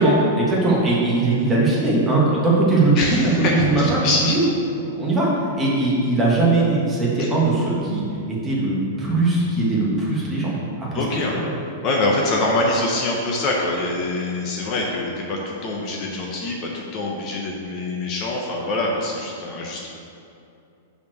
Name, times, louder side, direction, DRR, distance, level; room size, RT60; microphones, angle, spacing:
voice 1, 0.0-4.4 4.8-11.0 11.4-11.5, right 2 dB, 10° right, -6 dB, 1.8 m, -20 dB
voice 2, 3.0-4.3 7.2-7.3 10.9-11.4 11.8-19.9, left 2 dB, 35° left, -1 dB, 0.9 m, -24 dB
5.7 x 4.5 x 6.4 m, 2.6 s
hypercardioid pair, 145°, 0 cm